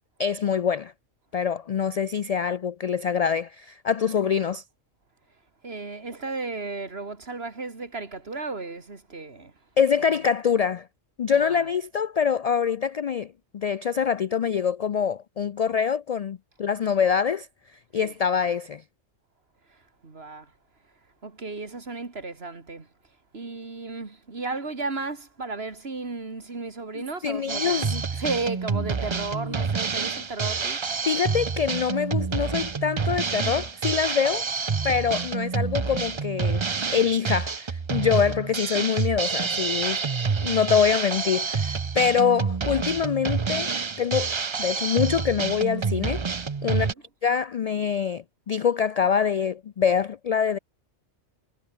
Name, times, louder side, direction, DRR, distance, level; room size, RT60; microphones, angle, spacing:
voice 1, 0.2-0.9 1.3-4.6 9.8-10.9 11.2-17.5 17.9-18.8 26.9-28.2 29.3-29.5 31.1-34.4 34.8-36.6 36.9-40.0 40.4-43.7 44.0-44.3 44.6-46.3 46.6-46.9 47.2-50.6, left 7 dB, 75° left, 0.3 m, -25 dB
voice 2, 5.6-9.5 10.0-10.1 11.3-11.7 18.0-18.1 20.0-20.5 21.2-22.9 23.3-27.8 28.2-30.8 38.2-38.3 46.7-46.9, right 3 dB, 55° right, 2.7 m, -34 dB
Drum kit, 27.5-46.9, right 5 dB, 30° right, 0.6 m, -28 dB
omnidirectional pair, 1.2 m